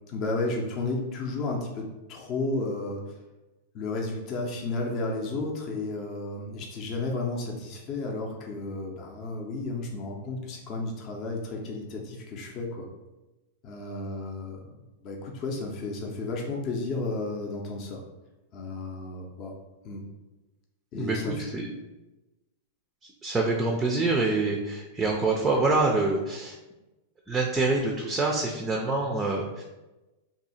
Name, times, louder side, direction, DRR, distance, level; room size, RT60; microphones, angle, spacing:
voice 1, 0.1-3.2 3.7-12.9 13.6-14.7 15.0-18.0 18.5-19.5 19.8-20.0 20.9-21.5, left 2 dB, 35° left, -1 dB, 0.6 m, -33 dB
voice 2, 23.2-26.6 27.3-29.6, right 3 dB, 10° right, 0 dB, 0.4 m, -26 dB
2.7 x 2.7 x 4.1 m, 1.1 s
supercardioid pair, 145°, 0 cm